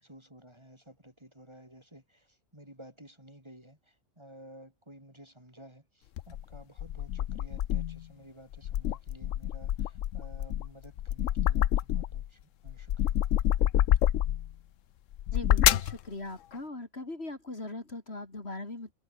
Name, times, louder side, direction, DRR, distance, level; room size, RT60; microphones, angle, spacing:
voice 1, 0.0-13.2, equal, 20° right, 5.7 m, -53 dB
sound 1, 6.2-8.0 8.5-12.3 12.7-14.5 15.1-16.0, left 12 dB, 70° left, 1.0 m, -27 dB
voice 2, 15.3-18.9, left 2 dB, 45° left, 4.0 m, -40 dB
omnidirectional pair, 1.4 m